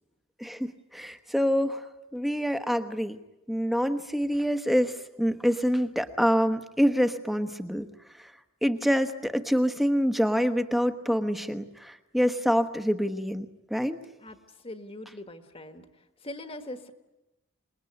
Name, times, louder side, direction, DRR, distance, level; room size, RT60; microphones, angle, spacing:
voice 1, 0.4-3.2 3.5-7.9 8.2-8.3 8.6-14.0, equal, ahead, 8 dB, 1.1 m, -26 dB
voice 2, 14.6-15.8 16.2-16.9, left 1 dB, 25° left, 7 dB, 1.5 m, -41 dB
26.5 x 21.0 x 9.5 m, 0.99 s
head